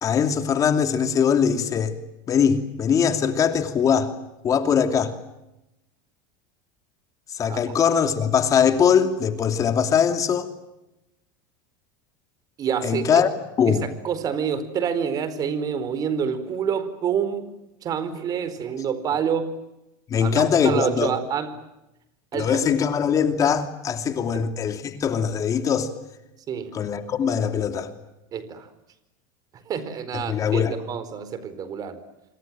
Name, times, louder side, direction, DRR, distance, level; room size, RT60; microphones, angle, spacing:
voice 1, 0.0-2.0 2.3-4.1 4.4-5.1 7.3-10.5 12.8-13.3 13.6-13.9 20.1-21.1 22.3-25.9 26.7-27.9 30.1-30.8, left 7 dB, 30° left, 2.9 m, -21 dB
voice 2, 12.6-13.2 13.7-17.5 17.8-19.5 20.2-21.6 22.3-22.7 24.3-24.4 26.5-26.7 28.3-28.7 29.7-32.0, right 7 dB, 35° right, 4.5 m, -27 dB
27.0 x 26.5 x 7.6 m
supercardioid pair, 125°, 11 cm